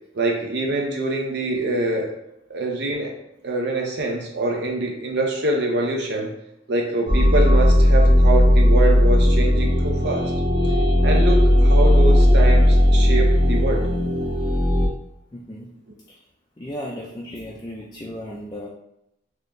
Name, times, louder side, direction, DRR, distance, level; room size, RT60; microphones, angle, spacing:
voice 1, 0.1-2.1 2.5-3.2 3.4-6.3 6.7-10.3 11.0-13.9, right 2 dB, 55° right, 1 dB, 0.5 m, -25 dB
sound 1, 7.1-14.9, left 1 dB, 25° right, 0.9 m, -16 dB
voice 2, 15.3-15.7 16.1-16.2 16.6-18.7, equal, 20° left, -2 dB, 0.4 m, -35 dB
4.1 x 2.8 x 2.6 m, 0.83 s
head